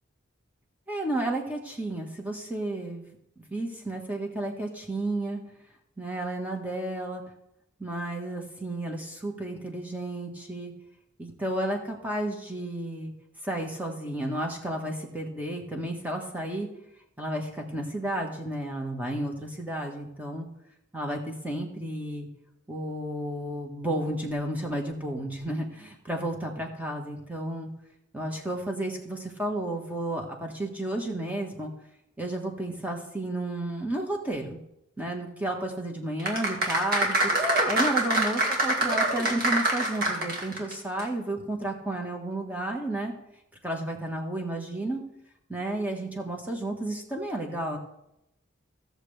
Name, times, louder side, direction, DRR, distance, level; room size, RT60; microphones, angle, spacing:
voice 1, 0.9-3.0 3.4-5.4 6.0-7.2 7.8-10.7 11.2-13.1 13.4-16.7 17.2-20.5 20.9-22.3 22.7-27.7 28.1-31.7 32.2-34.6 35.0-43.1 43.6-45.0 45.5-47.8, right 1 dB, 10° right, 1 dB, 1.4 m, -32 dB
sound 1, 36.2-40.7 41.0-41.1, right 1 dB, 50° right, 2.0 m, -25 dB
16.5 x 6.7 x 3.4 m, 0.82 s
head